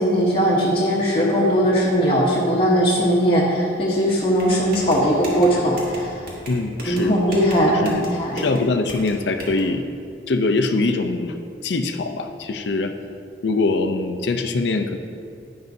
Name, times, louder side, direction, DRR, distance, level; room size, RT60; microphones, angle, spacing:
voice 1, 0.0-6.2 6.9-8.4, equal, 30° left, -7 dB, 1.1 m, -19 dB
sound 1, 4.4-9.6, right 1 dB, 50° right, 2.1 m, -36 dB
voice 2, 6.5-7.2 7.8-8.1 8.3-9.8 10.3-11.4 11.6-12.9 13.4-15.0, left 3 dB, 65° left, 7 dB, 0.5 m, -23 dB
11.0 x 10.5 x 2.7 m, 2.4 s
head